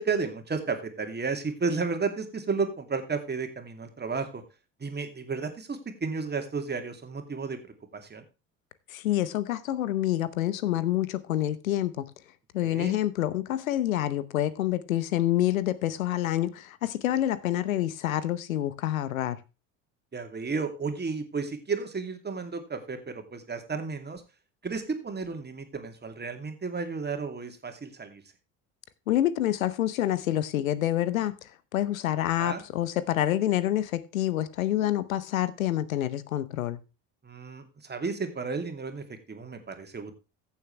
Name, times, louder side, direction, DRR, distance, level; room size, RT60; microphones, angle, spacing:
voice 1, 0.0-4.4 4.8-7.6 7.9-8.2 12.6-13.0 20.1-24.2 24.6-28.2 32.4-32.6 37.2-40.1, right 4 dB, 25° right, 2.6 m, -33 dB
voice 2, 8.9-12.1 12.5-19.4 29.1-31.3 31.7-36.8, left 13 dB, 85° left, 0.9 m, -27 dB
15.0 x 7.1 x 3.2 m
hypercardioid pair, 70°, 40 cm